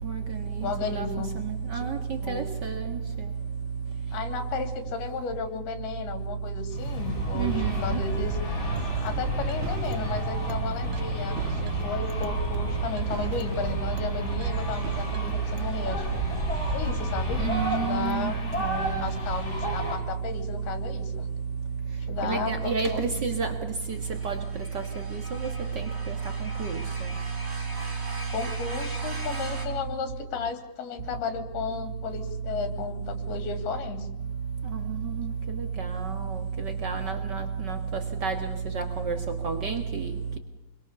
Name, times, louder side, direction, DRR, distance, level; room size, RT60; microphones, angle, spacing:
voice 1, 0.6-1.3 1.7-1.9 2.2-2.5 4.1-8.4 9.0-16.2 16.7-17.4 17.8-18.4 19.0-21.3 22.1-23.1 28.3-34.1 37.4-37.5, left 6 dB, 70° left, 8 dB, 4.6 m, -34 dB
voice 2, 1.7-2.9 7.3-8.0 17.4-18.3 18.6-18.9 22.2-23.5 24.2-24.3 26.1-26.2 26.6-26.8 35.0-35.2 35.8-36.1 36.8-37.8 38.2-38.4 38.7-39.2 39.4-40.1, right 6 dB, 65° right, 6 dB, 1.0 m, -29 dB
sound 1, 6.7-20.0, equal, 15° left, 5.9 m, -32 dB
sound 2, 8.8-15.7, right 9 dB, 85° right, 3.3 m, -39 dB
sound 3, 23.9-29.7, right 1 dB, 15° right, 4.5 m, -41 dB
27.0 x 23.0 x 7.0 m, 0.97 s
omnidirectional pair, 4.7 m